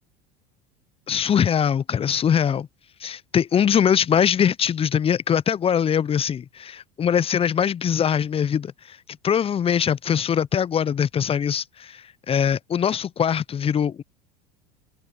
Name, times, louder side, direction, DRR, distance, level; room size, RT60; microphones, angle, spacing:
voice 1, 1.1-2.7 3.0-9.0 9.2-14.0, left 8 dB, 30° left, 0.7 m, -22 dB
hypercardioid pair, 75°, 21 cm